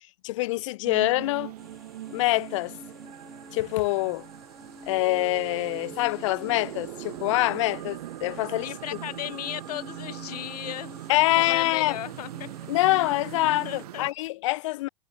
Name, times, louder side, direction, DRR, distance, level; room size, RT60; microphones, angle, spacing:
voice 1, 0.2-1.5 2.1-2.8 3.5-4.3 4.9-8.7 11.1-12.0 12.7-14.9, left 19 dB, 50° left, 0.4 m, -25 dB
sound 1, 0.8-14.1, right 14 dB, 65° right, 0.8 m, -41 dB
sound 2, 1.6-13.9, equal, ahead, 3.5 m, -48 dB
sound 3, 5.8-7.5, right 11 dB, 25° right, 3.8 m, -51 dB
voice 2, 8.6-10.9 11.4-12.5 13.6-14.0, left 13 dB, 70° left, 1.3 m, -36 dB
hypercardioid pair, 150°, 21 cm